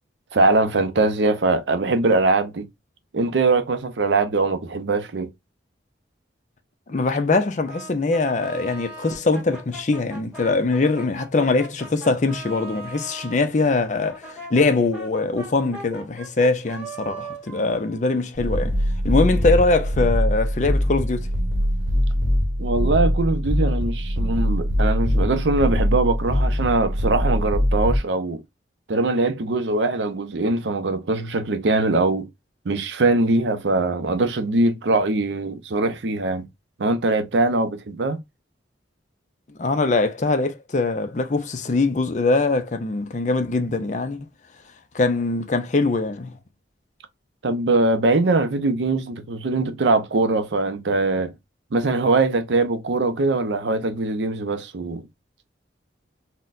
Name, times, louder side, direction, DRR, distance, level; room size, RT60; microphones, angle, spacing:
voice 1, 0.3-2.7 3.1-5.3 22.6-28.4 28.9-32.3 32.7-36.4 36.8-38.2 47.4-51.3 51.7-55.1, right 3 dB, 70° right, 0.5 m, -22 dB
voice 2, 6.9-18.8 19.0-21.3 39.6-44.2 44.9-46.3, left 3 dB, 40° left, 0.5 m, -22 dB
Brass instrument, 7.6-13.4 14.0-18.8, right 2 dB, 5° right, 1.1 m, -40 dB
sound 1, 18.3-28.0, equal, 90° right, 0.9 m, -22 dB
4.0 x 2.1 x 2.5 m
head